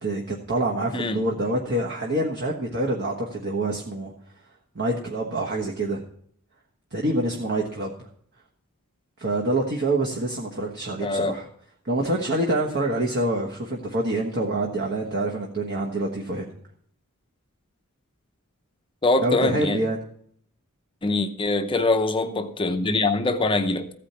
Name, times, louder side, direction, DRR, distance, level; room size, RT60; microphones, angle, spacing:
voice 1, 0.0-4.1 4.7-6.0 6.9-8.1 9.2-11.5 11.8-16.5 19.2-20.0, right 1 dB, 50° right, 1.3 m, -26 dB
voice 2, 11.0-11.3 19.0-19.8 21.0-23.9, left 2 dB, 25° left, 0.7 m, -23 dB
14.5 x 5.0 x 8.6 m
head